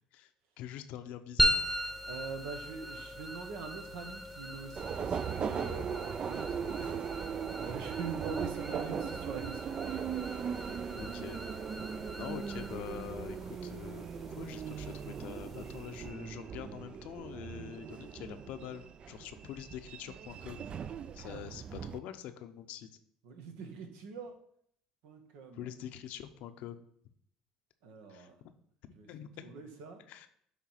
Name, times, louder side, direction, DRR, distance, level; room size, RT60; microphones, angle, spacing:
voice 1, 0.6-1.7 10.9-11.4 12.1-20.7 21.1-22.9 25.5-26.8 28.1-28.3 29.1-29.5 30.1-30.3, left 10 dB, 75° left, 9 dB, 0.6 m, -45 dB
sound 1, 1.4-16.1, equal, 5° right, 1.0 m, -38 dB
voice 2, 2.1-5.9 6.2-7.0 7.6-9.8 21.3-21.5 23.2-24.4 25.0-25.7 27.8-28.4 29.0-30.0, right 5 dB, 85° right, 5 dB, 1.1 m, -44 dB
Subway metro underground, 4.8-22.0, right 7 dB, 45° right, 0.4 m, -39 dB
7.3 x 3.3 x 5.5 m, 0.65 s
supercardioid pair, 85°, 2 cm